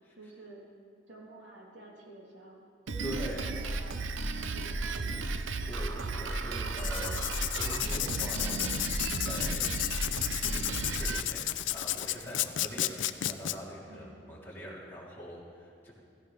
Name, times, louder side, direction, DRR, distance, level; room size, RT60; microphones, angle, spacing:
voice 1, 0.2-0.6 1.1-2.6 2.9-5.3 13.9-14.2, right 1 dB, 70° right, -3 dB, 3.1 m, -50 dB
Drum kit, 2.9-11.2, right 3 dB, 85° right, 0.7 m, -34 dB
voice 2, 3.0-3.6 5.7-7.2 7.5-9.7 10.4-15.9, equal, 10° left, -7 dB, 3.0 m, -43 dB
Writing, 6.7-13.5, left 13 dB, 75° left, 0.5 m, -33 dB
16.5 x 16.0 x 3.3 m, 2.5 s
head